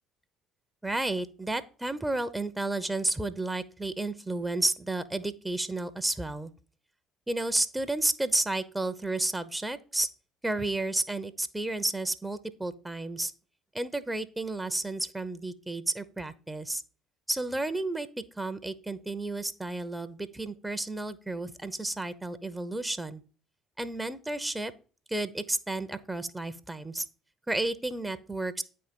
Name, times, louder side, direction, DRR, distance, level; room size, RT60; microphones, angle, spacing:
voice 1, 0.8-6.5 7.3-10.1 10.4-13.3 13.7-16.8 17.3-23.2 23.8-24.7 25.1-27.0 27.5-28.6, right 2 dB, 10° right, 13 dB, 0.7 m, -32 dB
9.0 x 4.4 x 5.2 m, 0.39 s
figure-of-eight pair, 50°, 0 cm